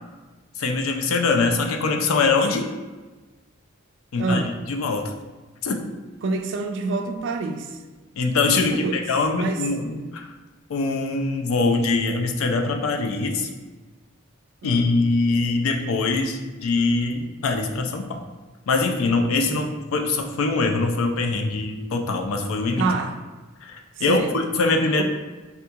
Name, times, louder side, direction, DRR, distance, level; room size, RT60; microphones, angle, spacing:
voice 1, 0.6-2.7 4.1-5.1 5.6-5.8 8.2-10.3 10.7-13.5 14.6-18.2 18.7-22.9 23.6-25.0, left 3 dB, 85° left, 4 dB, 0.4 m, -23 dB
voice 2, 4.1-4.5 6.2-7.8 8.7-9.0 9.3-9.6 14.6-14.9 19.5-19.7 22.8-23.2 24.0-24.3, right 3 dB, 60° right, 6 dB, 0.3 m, -27 dB
3.4 x 2.3 x 2.8 m, 1.3 s
head